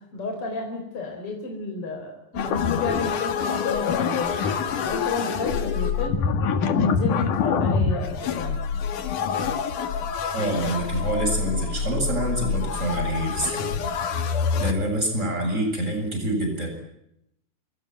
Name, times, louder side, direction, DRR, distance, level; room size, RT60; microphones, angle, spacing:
voice 1, 0.1-4.3 4.8-6.2 6.7-8.6, left 3 dB, 45° left, 3 dB, 4.8 m, -31 dB
sound 1, 2.3-14.7, left 6 dB, 85° left, 3.4 m, -26 dB
voice 2, 10.3-13.9 14.6-16.7, right 1 dB, 20° right, 4 dB, 7.8 m, -26 dB
28.0 x 22.0 x 9.4 m, 0.82 s
omnidirectional pair, 3.5 m